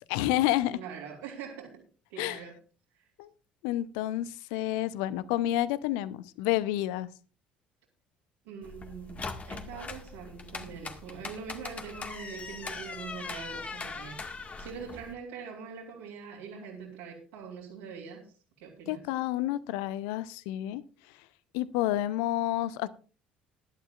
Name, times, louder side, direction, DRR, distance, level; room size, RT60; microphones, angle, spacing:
voice 1, 0.1-0.8 2.2-2.4 3.2-3.3 3.6-7.1 18.9-20.8 21.5-22.9, left 14 dB, 65° left, 17 dB, 0.8 m, -29 dB
voice 2, 0.7-1.8 2.1-2.5 2.9-3.0 4.5-4.7 8.4-18.3 18.6-19.0, right 6 dB, 70° right, -5 dB, 3.4 m, -43 dB
sound 1, 8.6-15.1, left 4 dB, 30° left, 1.9 m, -41 dB
20.0 x 11.5 x 2.5 m, 0.36 s
figure-of-eight pair, 55°, 5 cm